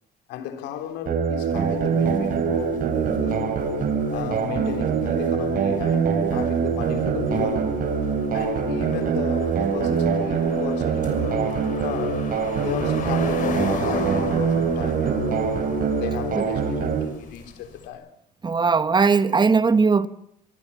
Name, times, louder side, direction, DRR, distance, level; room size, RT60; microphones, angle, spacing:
voice 1, 0.3-3.5 4.1-7.8 8.3-11.5 11.8-15.5 16.0-18.1, left 9 dB, 90° left, 3.6 m, -34 dB
sound 1, 1.1-17.1, right 6 dB, 60° right, 4.4 m, -24 dB
sound 2, 1.4-17.9, left 5 dB, 50° left, 6.5 m, -38 dB
voice 2, 18.4-20.1, right 5 dB, 25° right, 1.3 m, -19 dB
25.5 x 24.0 x 7.2 m
cardioid pair, 110°, 17 cm